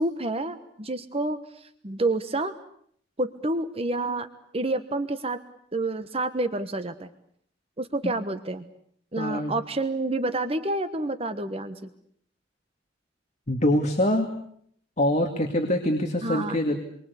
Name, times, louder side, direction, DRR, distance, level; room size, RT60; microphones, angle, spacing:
voice 1, 0.0-2.5 3.2-4.3 4.5-5.4 5.7-7.1 7.8-8.6 9.1-11.8 16.2-16.6, right 2 dB, 30° right, 9 dB, 1.3 m, -28 dB
voice 2, 9.2-9.6 13.5-14.3 15.0-16.8, left 1 dB, 35° left, 4 dB, 2.5 m, -24 dB
29.0 x 23.5 x 8.4 m, 0.67 s
head